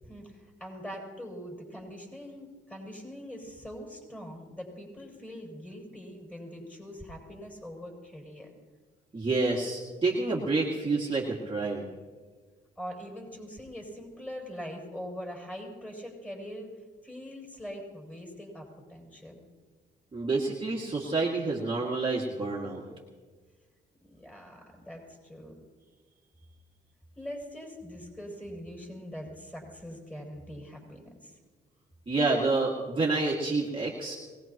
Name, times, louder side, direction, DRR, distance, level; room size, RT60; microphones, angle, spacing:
voice 1, 0.0-8.6 12.8-16.7 17.0-19.4 24.0-25.5 27.2-31.4, equal, 5° left, 0 dB, 7.0 m, -42 dB
voice 2, 9.1-11.9 20.1-22.8 32.1-34.2, right 3 dB, 25° right, -5 dB, 2.3 m, -28 dB
23.5 x 19.5 x 3.1 m, 1.4 s
cardioid pair, 90°, 20 cm